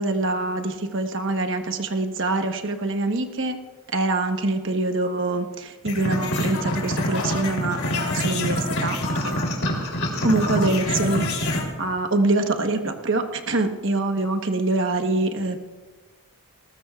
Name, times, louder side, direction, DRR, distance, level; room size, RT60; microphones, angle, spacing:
voice 1, 0.0-3.6 3.9-9.0 9.2-9.3 10.2-11.5 11.8-15.6, right 2 dB, 55° right, 5 dB, 1.2 m, -24 dB
sound 1, 5.9-11.6, left 1 dB, 75° left, 3.2 m, -25 dB
20.0 x 19.0 x 2.4 m, 1.3 s
head